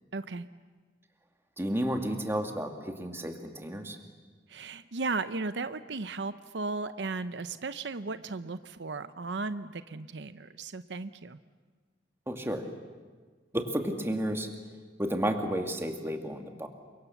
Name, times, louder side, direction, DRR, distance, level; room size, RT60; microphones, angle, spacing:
voice 1, 0.1-0.5 4.5-11.4, right 3 dB, 75° right, 12 dB, 0.7 m, -35 dB
voice 2, 1.6-4.0 12.3-12.7 13.5-14.5 15.0-16.7, equal, 15° right, 4 dB, 2.2 m, -32 dB
29.0 x 24.5 x 7.1 m, 1.5 s
head